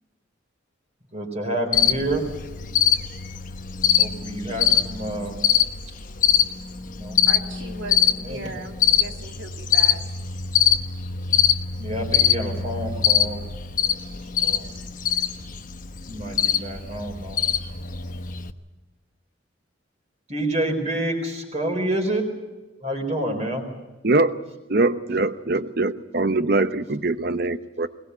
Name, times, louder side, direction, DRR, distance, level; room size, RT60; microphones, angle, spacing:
voice 1, 1.1-2.3 4.0-5.4 6.9-7.2 8.2-8.4 11.8-13.5 14.2-14.7 16.1-17.4 20.3-22.3 22.8-23.6, right 1 dB, 35° right, 4.3 m, -28 dB
Cricket, 1.7-18.5, left 9 dB, 45° left, 1.0 m, -23 dB
voice 2, 5.8-6.6 7.2-10.0, right 2 dB, 75° right, 2.6 m, -38 dB
voice 3, 24.0-24.4 24.7-27.9, right 2 dB, 50° right, 0.9 m, -22 dB
21.5 x 19.5 x 8.2 m
head